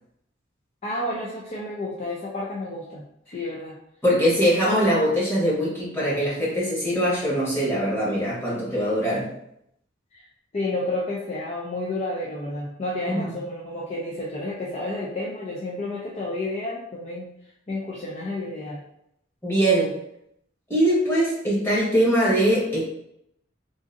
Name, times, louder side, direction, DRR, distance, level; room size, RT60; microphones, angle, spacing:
voice 1, 0.8-3.8 8.7-8.9 10.1-10.3 10.5-18.8, left 2 dB, 35° left, -4 dB, 0.4 m, -31 dB
voice 2, 4.0-9.3 13.1-13.2 19.4-19.9 20.7-22.8, equal, 10° left, -7 dB, 1.2 m, -22 dB
3.8 x 2.5 x 2.5 m, 0.76 s
head